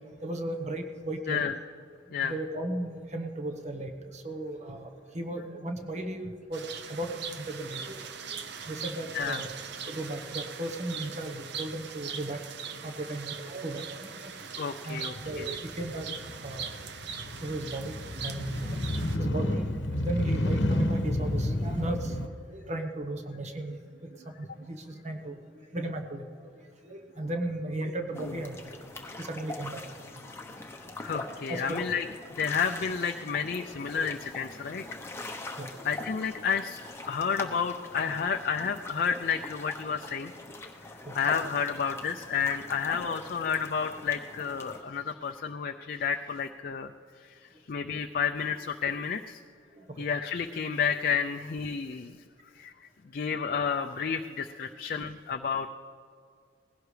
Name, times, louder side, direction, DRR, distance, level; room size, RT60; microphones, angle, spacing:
voice 1, 0.2-1.4 2.2-4.9 5.1-8.0 8.3-8.4 8.7-9.6 9.9-12.4 12.8-14.3 14.7-16.1 16.4-16.7 17.3-17.9 18.2-18.8 19.2-19.7 19.9-25.4 25.7-26.2 26.8-28.6 29.2-29.8 31.5-31.8 35.6-35.7 36.0-36.1 41.0-41.1 43.0-43.3 48.5-48.6 49.8-50.0, right 1 dB, 35° right, 5 dB, 1.1 m, -36 dB
sound 1, 6.5-19.2, right 6 dB, 60° right, 0.7 m, -41 dB
voice 2, 14.6-15.5 28.2-28.3 31.0-32.1 32.4-34.8 35.8-36.8 37.1-40.3 41.1-46.9 47.2-49.4 50.0-52.2 52.6-52.7 53.1-55.7, left 6 dB, 50° left, 5 dB, 0.4 m, -31 dB
Motorcycle, 15.2-22.3, left 1 dB, 70° left, 0.9 m, -31 dB
sound 2, 28.1-44.8, left 2 dB, 15° left, 0.9 m, -43 dB
20.0 x 16.0 x 3.3 m, 2.2 s
head